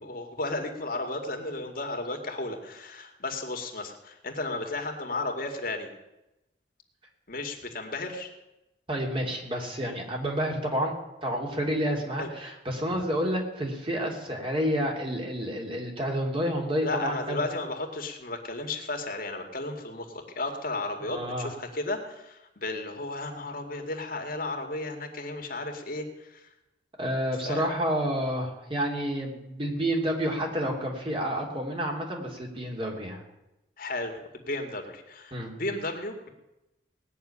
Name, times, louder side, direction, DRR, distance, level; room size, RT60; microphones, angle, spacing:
voice 1, 0.0-5.9 7.3-8.3 12.2-12.3 16.8-26.5 27.4-27.7 33.8-36.3, left 2 dB, 55° left, 4 dB, 2.2 m, -34 dB
voice 2, 8.9-17.4 21.0-21.5 27.0-33.2 35.3-35.5, equal, 30° right, 0 dB, 2.9 m, -29 dB
18.5 x 6.7 x 9.9 m, 0.96 s
head